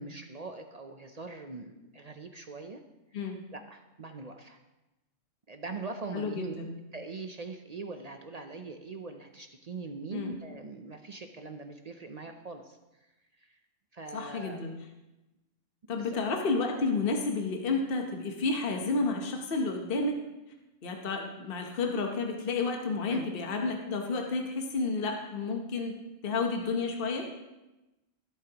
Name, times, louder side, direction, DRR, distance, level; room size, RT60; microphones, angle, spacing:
voice 1, 0.0-2.8 3.2-4.6 5.5-6.5 6.9-12.8 13.4-13.6 13.9-14.6 16.0-16.2 23.1-23.3, right 3 dB, 45° right, 6 dB, 0.5 m, -42 dB
voice 2, 6.1-6.8 10.1-10.3 14.1-14.7 15.9-20.2 20.8-27.3, left 3 dB, 45° left, 3 dB, 1.1 m, -31 dB
15.0 x 8.3 x 2.9 m, 1.0 s
omnidirectional pair, 1.4 m